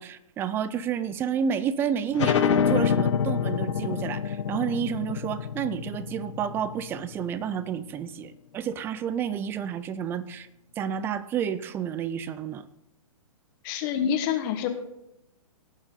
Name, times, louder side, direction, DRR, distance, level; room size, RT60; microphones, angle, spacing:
voice 1, 0.0-10.5 10.8-12.7, right 8 dB, 10° right, 16 dB, 0.3 m, -30 dB
sound 1, 2.1-7.4, left 7 dB, 60° left, 0.9 m, -26 dB
voice 2, 13.6-14.7, left 8 dB, 35° left, 7 dB, 1.3 m, -27 dB
17.5 x 7.0 x 3.8 m, 0.84 s
hypercardioid pair, 140°, 18 cm